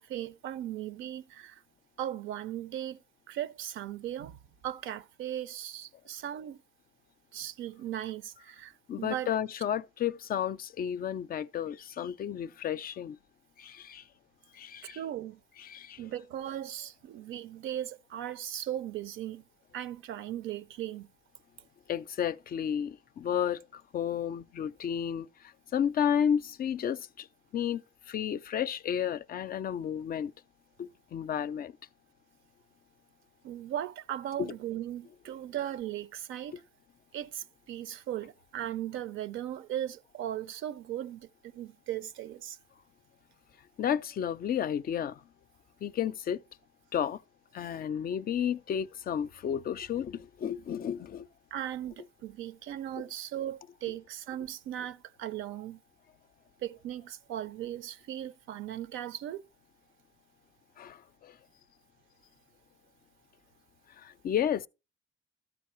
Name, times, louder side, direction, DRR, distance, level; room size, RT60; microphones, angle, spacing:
voice 1, 0.0-1.6 2.0-4.4 4.6-6.6 7.3-9.4 14.8-15.4 16.0-19.4 19.7-21.1 33.4-36.6 37.1-42.6 47.6-47.7 51.5-55.8 56.6-59.4, right 11 dB, 85° right, 0.6 m, -38 dB
voice 2, 8.9-13.2 13.6-14.0 14.5-15.0 15.6-16.0 21.9-25.3 25.7-27.3 27.5-30.3 30.8-31.7 34.4-34.5 43.8-45.2 45.8-46.4 46.9-47.2 47.5-51.3 60.8-61.3 64.0-64.7, left 9 dB, 50° left, 0.4 m, -32 dB
13.0 x 4.7 x 4.4 m
cardioid pair, 90°, 20 cm